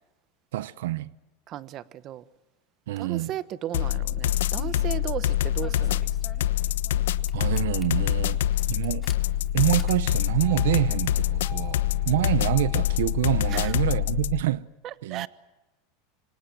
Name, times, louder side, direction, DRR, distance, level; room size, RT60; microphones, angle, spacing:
voice 1, 0.5-1.1 2.9-3.3 7.3-8.4 8.7-9.1 9.5-14.7 15.0-15.3, right 15 dB, 80° right, 0.8 m, -26 dB
voice 2, 1.5-2.2 3.0-6.1 12.1-12.3 13.5-13.7 14.8-15.3, right 12 dB, 35° right, 1.1 m, -35 dB
sound 1, 3.7-14.4, left 12 dB, 90° left, 1.1 m, -25 dB
Engine starting, 4.3-4.9 5.6-7.0 7.3-7.8 8.5-13.9, left 6 dB, 15° left, 2.8 m, -44 dB
26.5 x 25.5 x 7.7 m
supercardioid pair, 150°, 0 cm